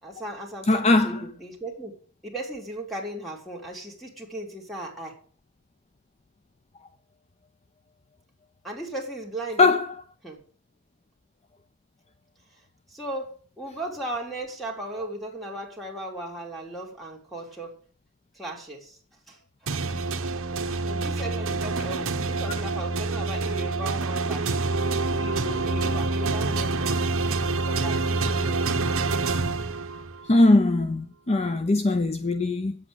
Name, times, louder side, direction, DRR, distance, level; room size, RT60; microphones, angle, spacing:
voice 1, 0.0-2.0 2.2-5.2 8.6-9.8 10.2-10.4 12.9-17.8 18.3-19.0 19.3-19.8 20.8-28.7, right 1 dB, ahead, 3.6 m, -37 dB
voice 2, 0.7-1.2 9.6-9.9 30.3-32.8, left 2 dB, 30° left, 0.6 m, -20 dB
sound 1, 19.7-30.3, right 3 dB, 65° right, 1.2 m, -27 dB
9.1 x 8.4 x 8.0 m
head